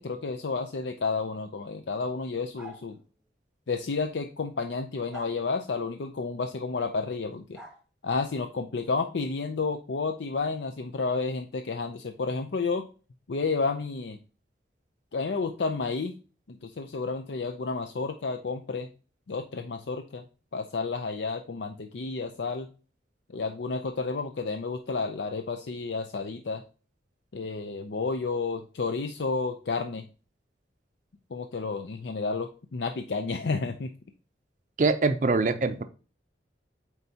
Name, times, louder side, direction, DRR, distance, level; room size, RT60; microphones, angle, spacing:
voice 1, 0.0-3.0 3.7-7.6 8.0-12.9 13.3-14.2 15.1-16.1 16.5-18.9 19.3-20.2 20.5-22.7 23.3-26.6 27.3-30.0 31.3-33.9, left 4 dB, 75° left, 0.5 m, -31 dB
sound 1, 2.6-2.9 5.1-5.4 7.5-7.8, right 1 dB, 5° right, 1.1 m, -43 dB
voice 2, 34.8-35.8, right 3 dB, 40° right, 0.5 m, -24 dB
8.0 x 4.4 x 2.8 m
head